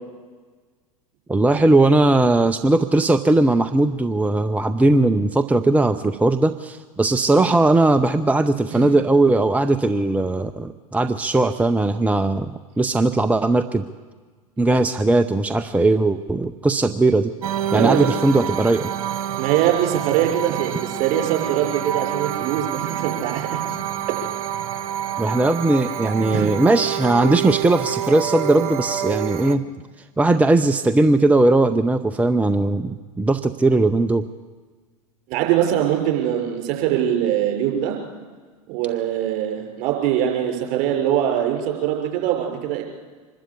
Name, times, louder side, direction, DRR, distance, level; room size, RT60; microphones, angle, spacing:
voice 1, 1.3-13.8 14.6-17.3 17.7-18.9 25.2-29.6 30.2-34.3, right 2 dB, 10° right, 10 dB, 0.6 m, -18 dB
sound 1, 17.4-29.6, right 10 dB, 70° right, 1.1 m, -28 dB
voice 2, 17.7-18.1 19.4-23.6 26.3-26.5 35.3-38.0 38.7-42.8, right 11 dB, 50° right, 2 dB, 5.9 m, -22 dB
25.0 x 12.5 x 8.5 m, 1.4 s
hypercardioid pair, 95°, 18 cm